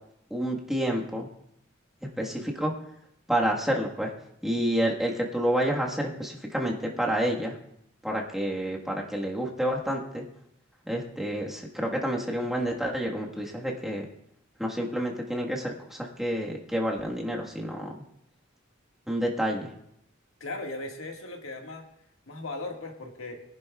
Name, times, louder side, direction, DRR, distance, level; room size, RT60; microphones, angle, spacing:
voice 1, 0.3-1.3 2.2-2.7 3.3-4.1 4.4-7.5 8.0-10.2 10.9-14.1 14.6-17.9 19.1-19.7, equal, ahead, -2 dB, 1.4 m, -29 dB
voice 2, 20.4-21.9 22.3-23.4, left 2 dB, 75° left, 2 dB, 1.7 m, -38 dB
22.5 x 10.5 x 2.3 m, 0.74 s
head